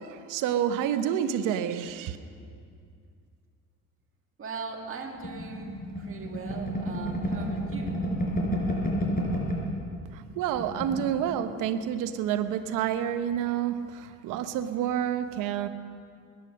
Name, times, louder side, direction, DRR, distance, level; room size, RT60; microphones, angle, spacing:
voice 1, 0.0-2.2 10.1-15.7, right 9 dB, 85° right, 10 dB, 0.9 m, -29 dB
voice 2, 4.4-8.0, right 4 dB, 45° right, 2 dB, 2.3 m, -40 dB
sound 1, 5.2-9.8 10.1-10.2 10.5-11.1, equal, 30° left, 4.6 m, -30 dB
21.0 x 9.9 x 6.5 m, 2.3 s
cardioid pair, 95°, 31 cm